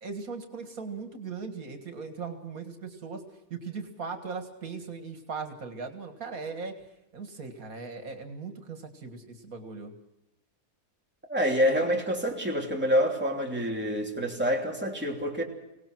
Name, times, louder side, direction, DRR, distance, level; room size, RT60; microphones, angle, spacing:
voice 1, 0.0-3.2 3.5-6.7 7.1-9.9, right 5 dB, 80° right, 6 dB, 2.2 m, -38 dB
voice 2, 11.3-15.4, equal, 5° right, -1 dB, 3.1 m, -27 dB
24.5 x 18.5 x 6.1 m, 0.88 s
omnidirectional pair, 1.5 m